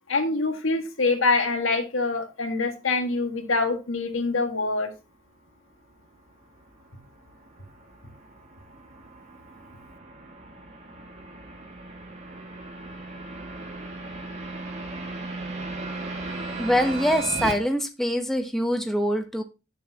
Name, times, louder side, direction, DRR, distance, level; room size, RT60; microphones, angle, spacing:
voice 1, 0.1-4.9, left 3 dB, 80° left, 5 dB, 1.7 m, -25 dB
sound 1, 6.0-17.5, right 3 dB, 35° right, 1.8 m, -37 dB
voice 2, 16.6-19.4, equal, ahead, 5 dB, 0.8 m, -24 dB
10.0 x 6.9 x 2.9 m, 0.28 s
head